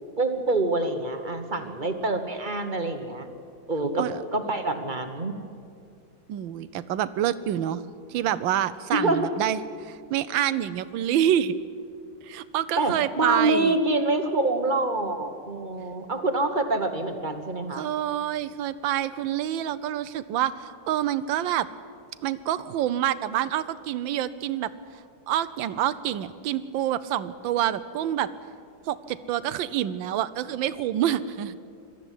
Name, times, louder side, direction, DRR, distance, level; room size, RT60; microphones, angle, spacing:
voice 1, 0.2-3.3 3.7-5.3 8.9-9.3 12.8-17.8, right 2 dB, 30° right, 7 dB, 1.1 m, -26 dB
voice 2, 6.3-7.8 8.1-11.5 12.2-13.7 17.7-21.7 22.2-24.7 25.3-28.3 28.8-31.6, right 11 dB, 85° right, 15 dB, 1.4 m, -27 dB
20.0 x 13.5 x 10.0 m, 2.4 s
omnidirectional pair, 2.1 m